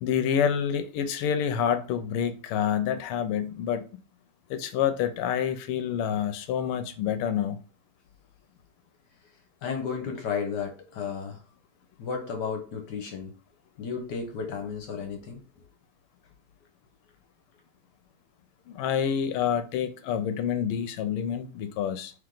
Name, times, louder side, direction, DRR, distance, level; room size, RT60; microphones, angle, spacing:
voice 1, 0.0-3.8 4.5-7.6 18.7-22.1, left 8 dB, 90° left, 1.5 m, -28 dB
voice 2, 9.6-11.4 12.0-13.3 13.8-15.4, left 6 dB, 65° left, 1.2 m, -33 dB
3.4 x 3.2 x 3.8 m
omnidirectional pair, 2.4 m